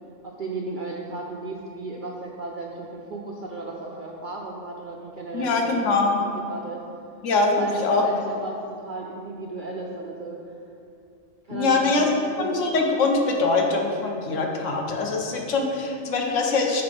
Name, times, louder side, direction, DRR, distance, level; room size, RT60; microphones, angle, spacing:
voice 1, 0.2-5.7 6.2-6.8 7.5-7.7 8.0-10.5 11.4-12.6, right 3 dB, 60° right, -1 dB, 0.5 m, -35 dB
voice 2, 5.3-6.2 7.2-8.1 11.5-12.1 12.4-16.8, left 3 dB, 75° left, 1 dB, 1.1 m, -23 dB
5.8 x 3.9 x 5.2 m, 2.5 s
omnidirectional pair, 1.3 m